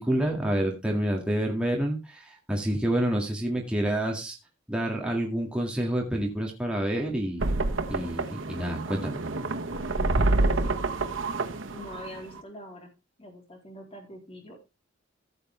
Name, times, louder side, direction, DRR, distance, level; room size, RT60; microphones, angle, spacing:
voice 1, 0.0-4.4 4.7-7.4 7.9-9.2, right 1 dB, 5° right, -1 dB, 2.1 m, -28 dB
sound 1, 7.4-12.4, right 2 dB, 90° right, 1.1 m, -28 dB
voice 2, 10.4-10.8 11.7-12.9 13.2-14.7, equal, 30° left, 2 dB, 3.6 m, -44 dB
15.5 x 6.8 x 3.3 m, 0.25 s
head